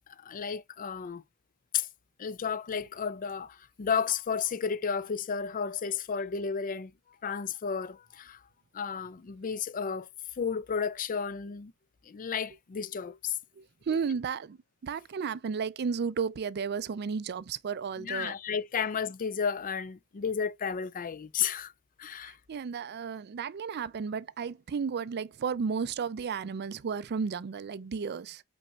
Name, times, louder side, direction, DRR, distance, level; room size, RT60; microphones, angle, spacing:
voice 1, 0.2-1.2 1.7-1.9 2.2-6.9 7.2-8.4 8.7-10.1 10.4-11.7 12.1-13.4 18.0-21.7 22.0-22.4, left 6 dB, 40° left, 0.4 m, -32 dB
voice 2, 13.6-14.6 14.8-18.4 22.2-28.4, right 6 dB, 50° right, 0.4 m, -33 dB
5.3 x 4.3 x 2.3 m
head